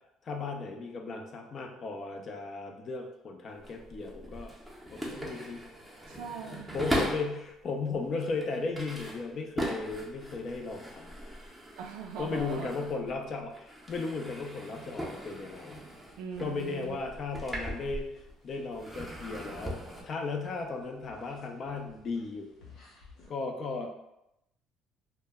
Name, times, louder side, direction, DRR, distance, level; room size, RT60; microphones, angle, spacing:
voice 1, 0.2-4.5 4.9-5.6 6.7-11.1 12.2-15.8 16.4-18.1 18.4-19.8 20.0-22.5 23.3-23.9, left 3 dB, 45° left, 3 dB, 0.4 m, -36 dB
sound 1, 3.5-7.4 8.0-13.2 13.5-18.4 18.7-20.0, equal, ahead, 0.6 m, -39 dB
voice 2, 6.1-6.9 11.8-12.7 16.2-17.0, right 6 dB, 85° right, 4 dB, 0.3 m, -40 dB
sound 2, 16.3-23.3, left 3 dB, 70° left, 0.9 m, -58 dB
2.1 x 2.1 x 3.4 m, 0.84 s
cardioid pair, 105°, 0 cm